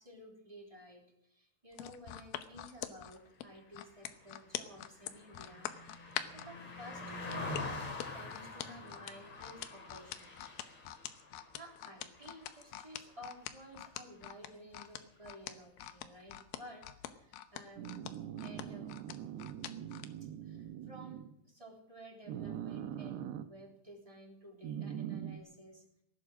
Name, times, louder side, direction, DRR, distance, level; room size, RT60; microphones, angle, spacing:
voice 1, 0.0-10.6 11.5-17.9 18.4-18.9 20.2-25.8, equal, 10° right, 0 dB, 2.9 m, -54 dB
sound 1, 1.7-6.5 7.3-20.1 20.6-20.7, left 13 dB, 75° left, 2.6 m, -43 dB
Car passing by, 3.8-13.4 13.8-14.0, left 2 dB, 45° left, 3.9 m, -46 dB
sound 2, 17.8-21.4 22.3-23.5 24.6-25.4, right 10 dB, 80° right, 2.9 m, -42 dB
19.0 x 11.5 x 6.2 m, 0.74 s
omnidirectional pair, 4.7 m